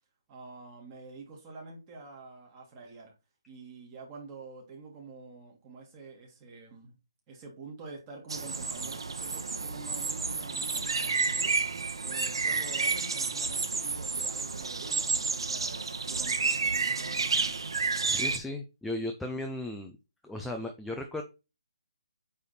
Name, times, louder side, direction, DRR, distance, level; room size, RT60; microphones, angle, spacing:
voice 1, 0.3-3.1 3.5-6.9 7.3-11.7 12.0-17.6, right 3 dB, 20° right, 1.8 m, -47 dB
sound 1, 8.3-18.4, right 4 dB, 70° right, 1.1 m, -30 dB
voice 2, 18.1-19.9 20.2-21.2, left 1 dB, ahead, 0.4 m, -36 dB
8.7 x 3.4 x 4.2 m
hypercardioid pair, 170°, 3 cm